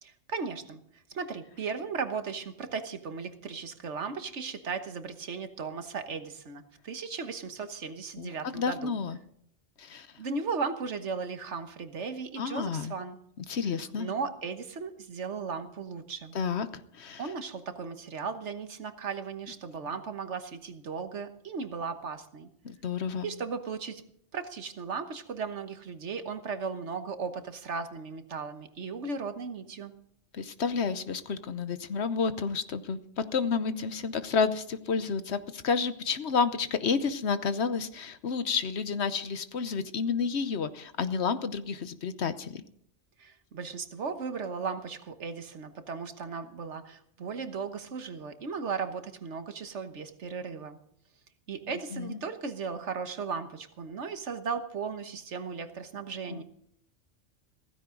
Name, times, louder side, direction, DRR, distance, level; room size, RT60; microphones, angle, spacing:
voice 1, 0.0-9.0 10.2-13.2 14.0-16.3 17.2-22.5 23.2-24.0 24.3-29.9 43.2-50.8 51.5-56.4, right 5 dB, 70° right, 8 dB, 1.5 m, -36 dB
voice 2, 8.2-9.2 9.8-10.1 12.4-12.9 13.5-14.1 16.3-16.7 17.0-17.2 22.6-23.3 30.3-42.6 51.9-52.2 56.3-56.4, left 5 dB, 65° left, 12 dB, 1.1 m, -30 dB
16.0 x 15.0 x 3.8 m, 0.68 s
omnidirectional pair, 1.2 m